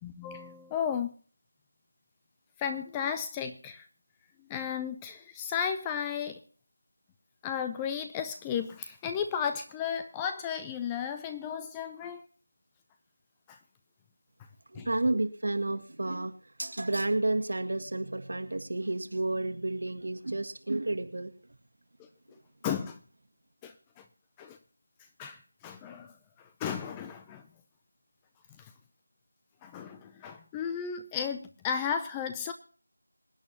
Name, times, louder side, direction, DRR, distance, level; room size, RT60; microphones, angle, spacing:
voice 1, 0.0-1.1 2.6-3.9 4.5-6.4 7.4-12.2 13.5-13.6 14.7-14.9 22.6-23.0 23.6-24.0 24.4-24.6 25.2-27.4 28.6-28.7 29.6-32.5, left 7 dB, 10° left, 8 dB, 0.5 m, -34 dB
voice 2, 14.7-21.3, right 2 dB, 60° right, 6 dB, 1.8 m, -31 dB
26.0 x 8.8 x 2.8 m, 0.42 s
figure-of-eight pair, 170°, 0 cm